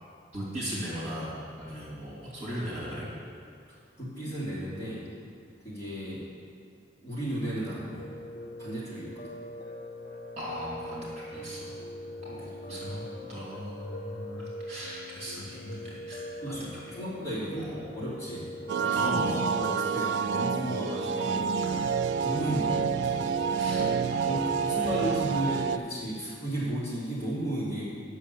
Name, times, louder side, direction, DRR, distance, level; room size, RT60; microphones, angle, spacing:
voice 1, 0.3-3.1 10.4-11.7 12.2-13.0 13.3-16.6 17.5-17.8 18.9-19.4 21.6-21.9 22.4-22.6 23.5-25.0, equal, 40° right, -7 dB, 2.9 m, -38 dB
voice 2, 3.7-5.1 5.6-6.2 7.0-8.0 8.6-9.3 12.0-12.1 12.4-12.9 16.4-18.5 18.8-21.5 22.2-22.7 23.0-27.8, right 1 dB, 15° left, -10 dB, 2.9 m, -34 dB
Piano, 8.0-21.7, left 1 dB, 55° left, 0.7 m, -42 dB
sound 1, 18.7-25.8, right 6 dB, 75° right, 0.3 m, -28 dB
8.6 x 6.4 x 6.9 m, 2.3 s
head